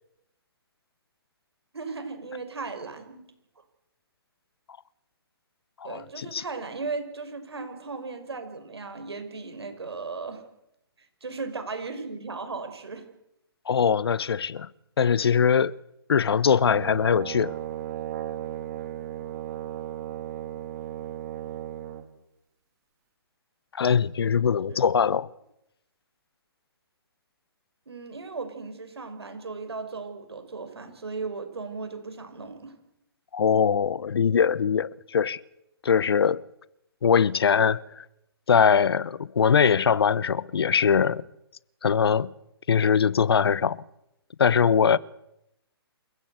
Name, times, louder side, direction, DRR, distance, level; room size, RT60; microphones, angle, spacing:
voice 1, 1.7-3.2 5.8-10.4 11.0-13.1 24.7-24.8 27.9-32.8, right 4 dB, 80° right, 6.0 m, -36 dB
voice 2, 5.8-6.4 13.7-14.7 15.0-15.8 16.1-17.6 23.8-25.3 33.3-35.4 35.8-36.4 37.0-38.0 38.5-41.2 41.8-42.3 42.7-43.8 44.4-45.0, left 7 dB, 70° left, 0.9 m, -22 dB
Brass instrument, 16.6-22.1, right 12 dB, 40° right, 3.1 m, -35 dB
28.5 x 16.0 x 8.1 m
hypercardioid pair, 135°, 13 cm